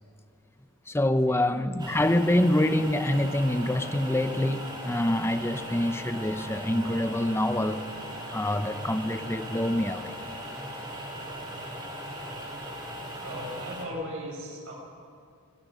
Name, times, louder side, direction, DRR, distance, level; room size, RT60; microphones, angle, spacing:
voice 1, 0.9-7.9 8.3-10.1, left 1 dB, 10° left, 0.7 m, -26 dB
sound 1, 1.8-13.9, equal, 20° right, 3.3 m, -38 dB
voice 2, 13.2-14.7, equal, 65° right, 6.2 m, -37 dB
28.5 x 19.0 x 5.2 m
head